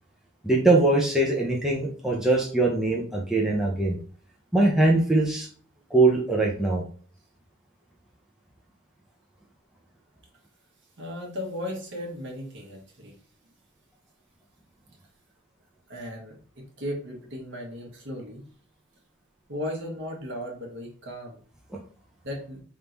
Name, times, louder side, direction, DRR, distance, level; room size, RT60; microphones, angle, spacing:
voice 1, 0.4-4.0 4.5-5.5 5.9-6.8, right 2 dB, ahead, -3 dB, 0.6 m, -22 dB
voice 2, 11.0-13.1 15.9-18.4 19.5-21.4 22.2-22.6, left 1 dB, 55° right, 0 dB, 1.4 m, -36 dB
3.6 x 2.6 x 4.4 m, 0.43 s
head